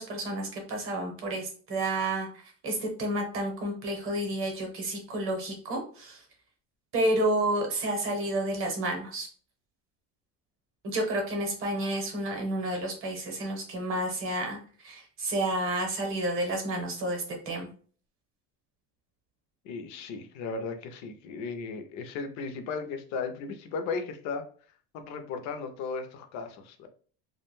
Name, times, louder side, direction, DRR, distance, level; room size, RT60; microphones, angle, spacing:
voice 1, 0.0-6.2 6.9-9.3 10.8-17.7, right 1 dB, 35° right, 2 dB, 0.8 m, -30 dB
voice 2, 19.6-24.4 24.9-26.9, left 4 dB, 50° left, 7 dB, 0.5 m, -36 dB
2.4 x 2.2 x 2.9 m, 0.43 s
cardioid pair, 160°, 38 cm